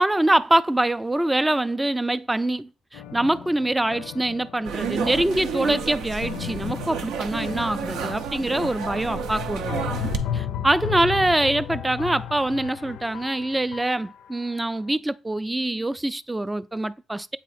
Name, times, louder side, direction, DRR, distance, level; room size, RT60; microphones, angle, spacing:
voice 1, 0.0-10.0 10.3-17.4, right 1 dB, 10° right, 0.3 m, -24 dB
sound 1, 2.9-14.4, left 9 dB, 85° left, 0.4 m, -35 dB
sound 2, 4.6-10.2, right 6 dB, 85° right, 0.6 m, -31 dB
8.2 x 2.8 x 4.2 m
cardioid pair, 90°, 0 cm